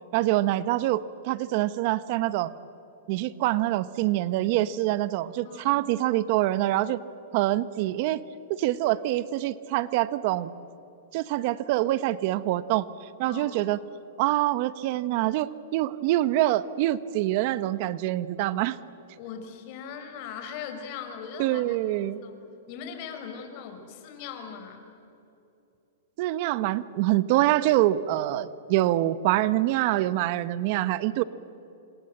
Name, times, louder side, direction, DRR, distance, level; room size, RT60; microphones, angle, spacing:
voice 1, 0.1-2.5 3.1-7.0 7.3-8.2 8.6-10.5 11.1-12.9 13.2-13.8 14.2-18.8 21.4-22.2 26.2-31.2, right 15 dB, 45° right, 15 dB, 1.0 m, -25 dB
voice 2, 5.4-5.8 13.3-13.6 19.2-22.4 22.7-24.8, left 7 dB, 45° left, 6 dB, 5.2 m, -40 dB
27.5 x 26.0 x 8.0 m, 2.8 s
hypercardioid pair, 145°, 0 cm